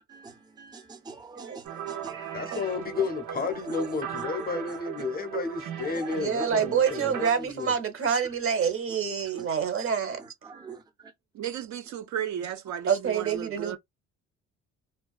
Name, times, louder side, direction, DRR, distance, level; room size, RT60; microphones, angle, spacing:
voice 1, 0.1-2.6 3.4-3.6 5.8-6.1 7.0-7.2 9.3-9.5 10.2-11.1, right 4 dB, 15° right, 0.5 m, -45 dB
sound 1, 1.6-7.3, right 9 dB, 85° right, 1.0 m, -37 dB
voice 2, 2.3-7.7, left 4 dB, 30° left, 0.6 m, -32 dB
voice 3, 6.2-10.2 12.9-13.8, right 7 dB, 45° right, 0.9 m, -27 dB
voice 4, 11.3-13.8, right 9 dB, 65° right, 0.5 m, -34 dB
2.3 x 2.2 x 2.4 m
cardioid pair, 90°, 30 cm